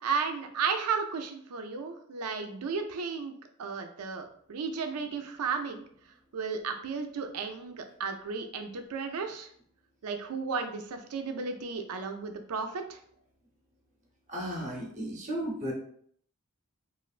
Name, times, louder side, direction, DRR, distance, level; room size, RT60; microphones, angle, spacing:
voice 1, 0.0-3.3 3.6-5.8 6.3-9.5 10.0-13.0, right 5 dB, 75° right, 6 dB, 0.4 m, -34 dB
voice 2, 14.3-15.7, equal, 35° right, -2 dB, 0.8 m, -34 dB
3.1 x 2.5 x 2.4 m, 0.62 s
head